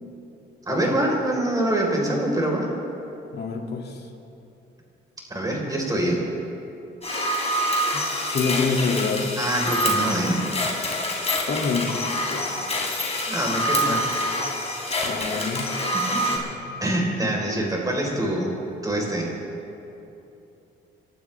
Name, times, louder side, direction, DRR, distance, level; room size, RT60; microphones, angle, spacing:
voice 1, 0.7-2.7 5.3-6.2 9.4-10.4 13.3-14.1 15.9-16.3 16.8-18.5 18.8-19.3, right 1 dB, 20° right, -1 dB, 4.4 m, -25 dB
voice 2, 3.3-4.0 7.9-9.4 11.5-12.5 15.0-15.7 16.3-16.8, left 4 dB, 55° left, 1 dB, 2.5 m, -27 dB
sound 1, 7.0-16.4, equal, 30° left, 3.6 m, -26 dB
28.5 x 12.0 x 3.5 m, 2.9 s
cardioid pair, 90°, 20 cm